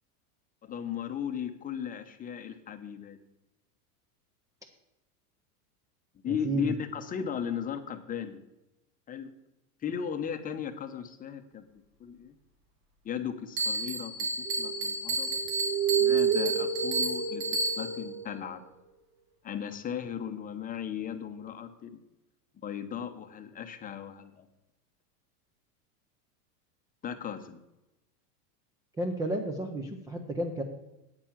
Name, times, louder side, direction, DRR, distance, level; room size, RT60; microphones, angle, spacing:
voice 1, 0.6-3.2 6.2-8.4 9.1-9.3 9.8-11.6 12.0-12.3 13.0-15.4 16.0-18.6 19.4-21.9 22.6-24.5 27.0-27.6, left 8 dB, 20° left, 8 dB, 0.7 m, -36 dB
voice 2, 6.3-6.7 29.0-30.6, right 1 dB, 10° right, 5 dB, 0.4 m, -32 dB
Bell, 13.6-18.1, right 2 dB, 85° right, 3.2 m, -32 dB
sound 1, 14.5-14.9 15.2-18.3, right 7 dB, 40° right, 1.4 m, -30 dB
8.7 x 7.3 x 7.2 m, 0.96 s
supercardioid pair, 140°, 47 cm